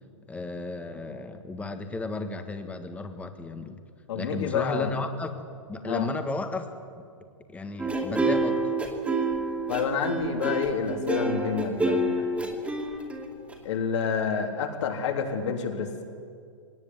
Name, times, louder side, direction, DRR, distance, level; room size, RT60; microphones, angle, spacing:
voice 1, 0.3-3.8 4.1-5.3 5.7-6.6 7.5-8.6, left 3 dB, 10° left, 7 dB, 1.6 m, -34 dB
voice 2, 4.1-4.9 5.8-6.1 9.7-12.3 13.6-16.0, left 6 dB, 60° left, 2 dB, 3.7 m, -28 dB
sound 1, 7.8-13.5, right 2 dB, 5° right, 2.5 m, -27 dB
20.0 x 18.5 x 9.5 m, 2.3 s
hypercardioid pair, 145°, 16 cm